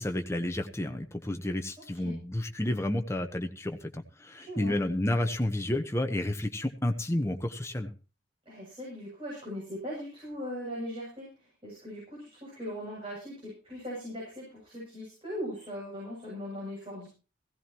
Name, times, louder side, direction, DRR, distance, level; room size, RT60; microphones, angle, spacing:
voice 1, 0.0-7.9, left 1 dB, 15° left, 6 dB, 1.1 m, -31 dB
voice 2, 4.4-4.7 8.4-17.1, equal, 30° right, -6 dB, 7.9 m, -39 dB
16.5 x 16.5 x 3.1 m, 0.35 s
head